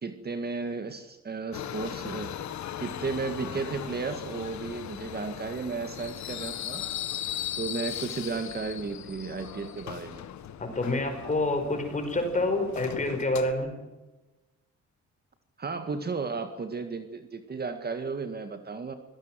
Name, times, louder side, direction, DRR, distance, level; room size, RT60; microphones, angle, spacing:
voice 1, 0.0-2.4 2.8-6.8 7.6-10.2 15.6-19.0, right 4 dB, 35° right, 8 dB, 2.0 m, -34 dB
Subway metro underground, 1.5-13.5, left 10 dB, 75° left, 1.7 m, -38 dB
voice 2, 10.6-13.7, left 2 dB, 25° left, 5 dB, 5.3 m, -27 dB
25.0 x 18.0 x 7.7 m, 1.1 s
cardioid pair, 110°, 29 cm